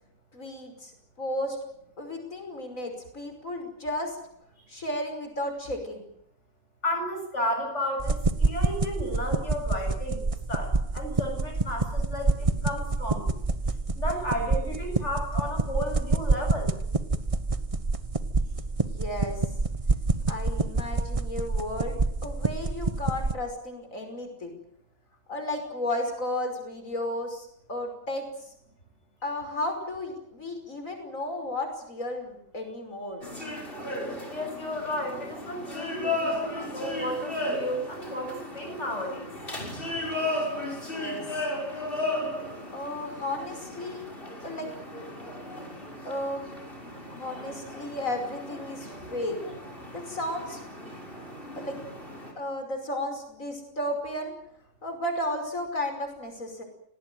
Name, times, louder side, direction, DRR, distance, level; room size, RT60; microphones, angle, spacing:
voice 1, 0.3-0.9 1.2-1.6 2.0-4.2 4.7-6.0 18.8-19.4 20.3-24.5 25.3-28.5 29.2-33.2 40.8-41.3 42.7-44.0 44.4-44.7 46.0-46.5 47.1-49.4 49.9-50.9 51.6-51.8 52.4-54.3 54.8-56.6, left 1 dB, 90° left, 5 dB, 5.9 m, -33 dB
voice 2, 6.8-10.2 10.5-13.3 14.0-16.7 34.3-39.3, left 1 dB, 60° left, 3 dB, 8.4 m, -33 dB
sound 1, 8.0-23.4, right 3 dB, 25° right, 1.2 m, -27 dB
sound 2, 33.2-52.3, left 1 dB, 45° left, 6.4 m, -35 dB
26.0 x 19.0 x 9.4 m, 0.74 s
omnidirectional pair, 1.4 m